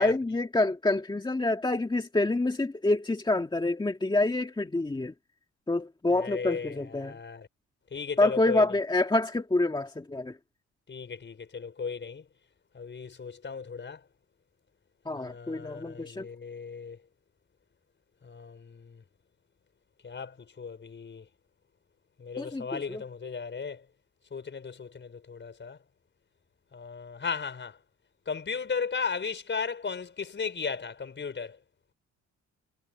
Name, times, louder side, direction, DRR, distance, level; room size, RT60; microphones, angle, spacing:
voice 1, 0.0-5.1 5.7-7.2 8.2-10.4 15.1-16.3 22.4-23.0, left 2 dB, 15° left, 1.9 m, -27 dB
voice 2, 6.1-7.5 7.9-8.7 10.9-12.3 12.7-14.0 15.1-17.0 18.2-19.0 20.0-21.3 22.2-23.8 24.3-25.8 26.7-27.8 28.3-31.6, left 5 dB, 40° left, 5.3 m, -36 dB
cardioid pair, 90°, 30 cm